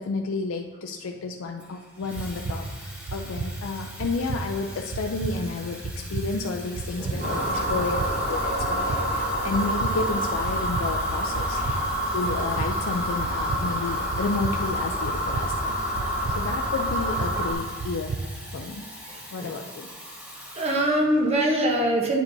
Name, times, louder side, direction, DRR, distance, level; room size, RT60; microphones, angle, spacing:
voice 1, 0.0-8.0 8.3-11.6 12.1-15.8 16.3-18.1 18.5-18.8 19.3-19.9, left 3 dB, 80° left, 3 dB, 0.4 m, -31 dB
Water tap faucet / Fill (with liquid), 1.6-21.3, equal, 5° right, 1.2 m, -43 dB
sound 1, 2.0-18.6, right 3 dB, 85° right, 0.5 m, -34 dB
voice 2, 7.0-7.9 11.5-11.8 15.9-16.4 19.0-19.6 20.5-22.2, right 1 dB, 30° right, 1 dB, 0.9 m, -26 dB
sound 2, 7.2-17.5, equal, 50° right, 2.1 m, -27 dB
9.3 x 7.1 x 2.7 m, 1.4 s
head